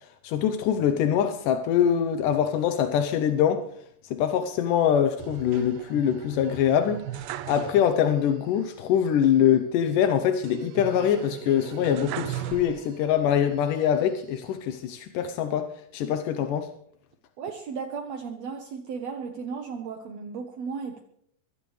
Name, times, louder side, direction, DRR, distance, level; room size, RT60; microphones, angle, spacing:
voice 1, 0.2-3.7 4.1-7.0 7.5-16.7, left 9 dB, 85° left, 2.4 m, -24 dB
sound 1, 5.2-8.2 8.5-8.6 10.4-13.2 13.7-14.5, right 12 dB, 90° right, 2.3 m, -38 dB
voice 2, 17.4-21.0, right 5 dB, 65° right, 2.1 m, -35 dB
23.0 x 16.0 x 3.3 m
omnidirectional pair, 3.6 m